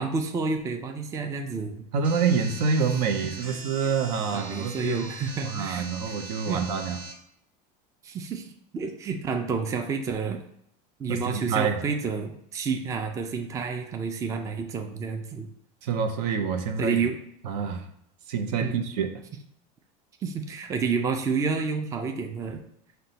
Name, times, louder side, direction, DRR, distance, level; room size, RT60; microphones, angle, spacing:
voice 1, 0.0-1.9 3.5-3.6 4.3-6.2 6.5-6.6 8.0-10.4 11.0-15.5 16.8-17.2 18.6-18.9 20.2-22.6, right 5 dB, 15° right, 4 dB, 0.3 m, -30 dB
voice 2, 1.9-5.1 5.4-7.0 11.1-11.8 15.8-17.0 17.4-17.8 18.3-19.1, right 6 dB, 85° right, 6 dB, 0.6 m, -27 dB
sound 1, 2.0-7.1, right 3 dB, 60° right, 1.0 m, -41 dB
5.7 x 2.2 x 3.9 m, 0.72 s
supercardioid pair, 145°, 20 cm